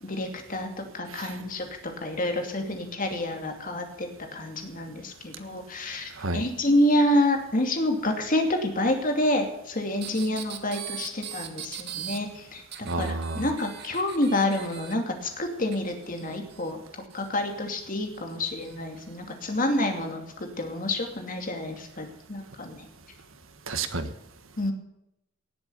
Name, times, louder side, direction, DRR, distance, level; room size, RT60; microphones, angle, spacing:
voice 1, 0.0-1.7 2.0-12.6 13.0-16.8 17.1-22.9 24.6-24.7, left 1 dB, 45° left, 4 dB, 2.5 m, -28 dB
sound 1, 10.0-12.2 12.7-14.9 15.7-17.3 18.1-18.8 19.5-19.6, right 11 dB, 55° right, 1.4 m, -40 dB
voice 2, 12.8-13.4 23.7-24.1, right 3 dB, 90° right, 9 dB, 1.5 m, -30 dB
18.0 x 7.8 x 6.9 m, 0.83 s
head